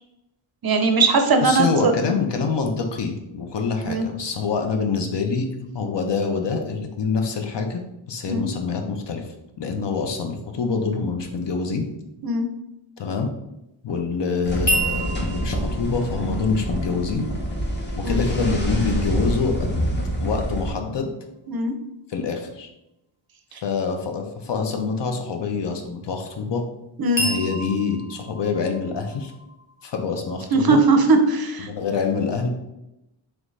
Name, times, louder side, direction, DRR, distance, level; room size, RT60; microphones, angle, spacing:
voice 1, 0.6-2.1 3.8-4.1 8.3-8.5 12.2-12.5 18.0-18.2 21.5-21.7 23.5-23.6 27.0-27.2 30.5-31.7, right 3 dB, 50° right, 6 dB, 0.5 m, -19 dB
voice 2, 1.4-5.5 5.7-9.3 9.6-11.9 13.0-13.3 13.8-17.3 18.0-19.7 20.2-21.1 22.1-22.7 23.6-26.7 27.2-29.3 29.8-30.8 31.6-32.5, left 5 dB, 60° left, 4 dB, 0.6 m, -26 dB
sound 1, 14.4-20.7, equal, 20° left, 0.7 m, -26 dB
sound 2, 14.7-18.7 27.2-31.0, right 1 dB, 40° left, 1.1 m, -31 dB
3.8 x 3.1 x 3.1 m, 0.89 s
wide cardioid pair, 135°, 49 cm